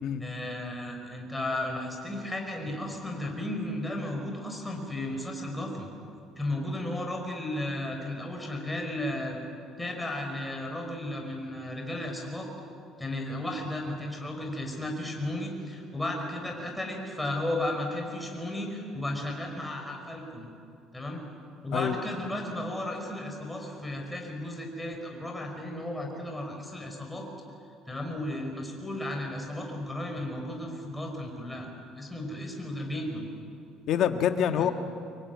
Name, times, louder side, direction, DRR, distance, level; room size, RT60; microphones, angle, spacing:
voice 1, 0.2-5.9 6.4-9.4 9.8-12.5 13.0-20.5 20.9-21.2 21.6-27.3 27.9-33.3 34.6-34.7, left 1 dB, 5° left, 1 dB, 5.3 m, -34 dB
voice 2, 33.9-34.7, left 9 dB, 55° left, 7 dB, 1.8 m, -26 dB
25.5 x 22.5 x 9.6 m, 2.6 s
cardioid pair, 140°, 0 cm